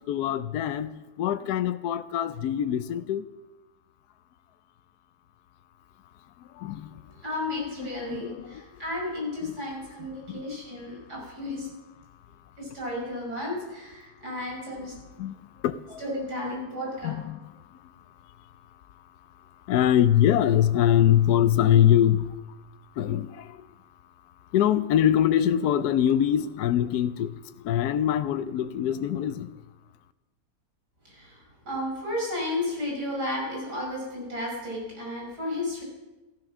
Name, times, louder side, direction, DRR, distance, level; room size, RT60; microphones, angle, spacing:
voice 1, 0.0-3.3 6.4-7.0 7.8-8.8 9.4-9.5 10.1-10.4 15.2-16.0 17.0-18.5 18.9-22.4 22.9-23.7 24.5-29.6, left 10 dB, 75° left, 11 dB, 1.2 m, -24 dB
voice 2, 7.2-11.7 12.6-14.9 16.0-17.1 31.1-35.8, left 1 dB, 75° right, -2 dB, 6.4 m, -33 dB
15.5 x 12.5 x 6.1 m, 1.1 s
omnidirectional pair, 1.7 m